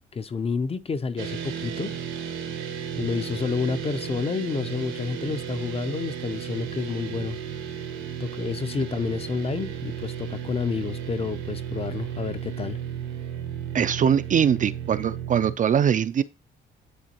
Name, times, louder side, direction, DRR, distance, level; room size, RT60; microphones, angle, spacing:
voice 1, 0.1-2.0 3.0-7.4 8.2-12.8, left 4 dB, 30° left, 0.5 m, -29 dB
sound 1, 1.2-15.5, right 8 dB, 85° right, 1.3 m, -34 dB
voice 2, 13.7-16.2, right 8 dB, 40° right, 0.4 m, -22 dB
10.5 x 3.8 x 2.9 m
cardioid pair, 95°, 20 cm